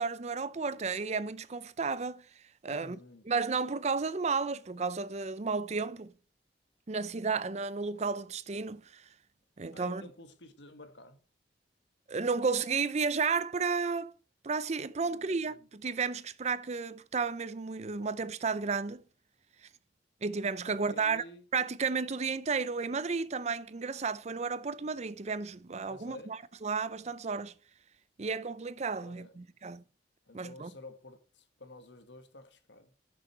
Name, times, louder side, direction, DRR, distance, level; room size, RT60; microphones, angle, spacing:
voice 1, 0.0-2.2 2.6-3.0 3.3-6.1 6.9-9.0 9.6-10.1 12.1-14.1 14.4-19.0 20.2-21.2 21.5-26.4 26.6-27.5 28.2-29.8 30.3-30.7, right 4 dB, 40° right, 0.6 m, -32 dB
voice 2, 2.7-3.2 9.7-11.2 15.0-15.7 20.6-21.4 25.8-26.4 29.0-29.3 30.3-32.9, left 2 dB, 85° left, 1.4 m, -51 dB
10.5 x 6.3 x 4.3 m
head